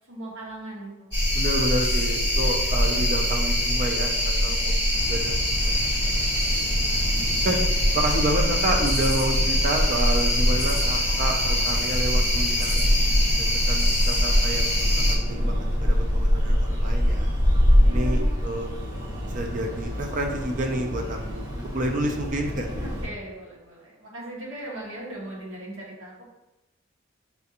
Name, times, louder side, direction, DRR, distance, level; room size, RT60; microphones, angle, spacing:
voice 1, 0.0-1.1 4.3-4.6 6.9-7.3 17.8-18.4 22.7-26.3, right 1 dB, 85° right, -5 dB, 1.3 m, -39 dB
sound 1, 1.1-15.1, left 1 dB, 20° right, 1.4 m, -23 dB
voice 2, 1.3-4.8 5.1-6.5 7.4-7.6 7.9-12.9 13.4-15.5 15.8-17.3 17.9-18.7 19.3-22.8, right 1 dB, 40° right, 2 dB, 0.4 m, -29 dB
sound 2, 4.9-23.1, equal, 65° right, 1.2 m, -26 dB
5.4 x 2.8 x 2.5 m, 1.0 s
head